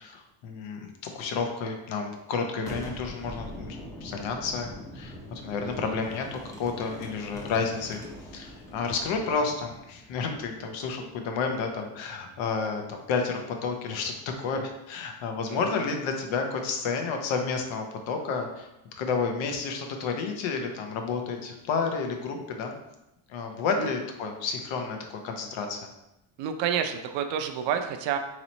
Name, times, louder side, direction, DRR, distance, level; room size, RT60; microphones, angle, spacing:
voice 1, 0.0-4.7 4.9-8.0 8.3-18.7 19.0-22.8 23.3-25.0 25.2-25.9, left 5 dB, 75° left, 4 dB, 0.8 m, -31 dB
Boom, 2.6-12.2, equal, 5° left, 0.5 m, -43 dB
voice 2, 5.6-6.0 15.5-15.8 23.8-23.9 26.4-28.2, right 8 dB, 70° right, 7 dB, 0.6 m, -30 dB
3.0 x 3.0 x 4.0 m, 0.89 s
cardioid pair, 150°, 46 cm